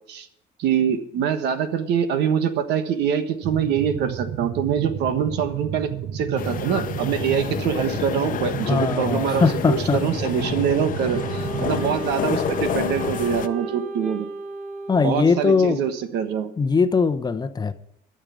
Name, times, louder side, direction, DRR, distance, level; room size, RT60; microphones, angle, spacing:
voice 1, 0.6-14.3 15.0-16.5, right 8 dB, 85° right, 10 dB, 1.3 m, -24 dB
sound 1, 3.4-11.9, right 9 dB, 60° right, 1.0 m, -32 dB
sound 2, 6.4-13.5, left 9 dB, 55° left, 0.9 m, -29 dB
voice 2, 8.7-10.0 10.5-10.6 14.9-15.8 16.6-17.7, left 4 dB, 25° left, 9 dB, 0.8 m, -20 dB
Wind instrument woodwind instrument, 11.1-15.7, right 3 dB, 45° right, 1.6 m, -34 dB
12.5 x 6.7 x 8.6 m, 0.77 s
cardioid pair, 110°, 17 cm